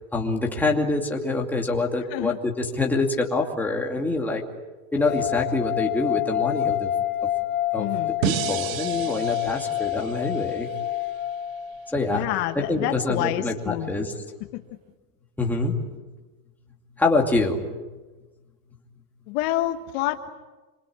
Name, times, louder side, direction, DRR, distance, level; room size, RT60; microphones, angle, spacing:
voice 1, 0.1-4.4 4.9-6.9 7.2-7.3 7.7-7.9 8.2-10.7 11.9-12.2 12.6-14.1 15.4-15.8 17.0-17.6, left 3 dB, 5° left, -1 dB, 2.5 m, -25 dB
sound 1, 5.0-12.1, left 12 dB, 25° left, 3.8 m, -28 dB
voice 2, 7.8-8.2 12.1-13.9 14.5-14.6 19.3-20.3, left 14 dB, 50° left, 6 dB, 1.5 m, -28 dB
sound 2, 8.2-11.3, right 10 dB, 75° right, 1.7 m, -32 dB
27.5 x 24.5 x 8.8 m, 1.2 s
supercardioid pair, 170°, 40 cm